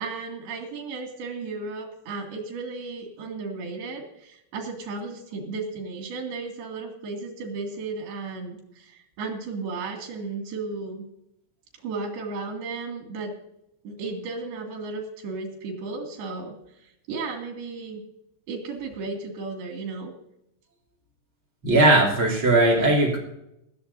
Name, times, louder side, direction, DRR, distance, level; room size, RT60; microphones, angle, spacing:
voice 1, 0.0-11.1 11.8-13.3 13.8-16.5 17.1-18.0 18.5-20.1, right 4 dB, 70° right, 3 dB, 4.3 m, -34 dB
voice 2, 21.6-23.2, right 2 dB, 35° right, -2 dB, 3.2 m, -18 dB
19.5 x 14.5 x 2.7 m, 0.81 s
omnidirectional pair, 4.7 m